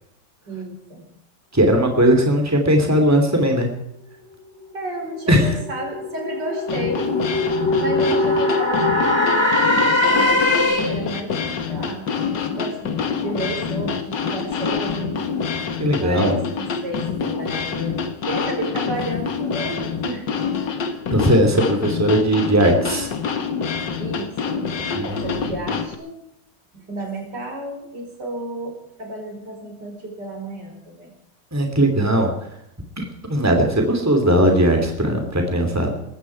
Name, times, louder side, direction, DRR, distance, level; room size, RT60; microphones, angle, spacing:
voice 1, 0.5-1.0 4.7-7.1 7.8-12.1 12.5-15.2 15.9-18.0 18.3-20.4 24.0-26.1 26.7-31.1, right 1 dB, 70° right, 2 dB, 5.2 m, -32 dB
voice 2, 1.5-3.7 5.3-5.5 15.8-16.4 21.1-23.1 24.9-25.4 31.5-32.3 33.0-33.1 33.3-35.9, right 1 dB, 10° right, 3 dB, 2.9 m, -18 dB
sound 1, 5.0-11.1, left 2 dB, 15° left, 2.7 m, -21 dB
sound 2, 6.7-26.0, left 6 dB, 90° left, 2.2 m, -26 dB
20.0 x 15.0 x 4.7 m, 0.78 s
omnidirectional pair, 1.9 m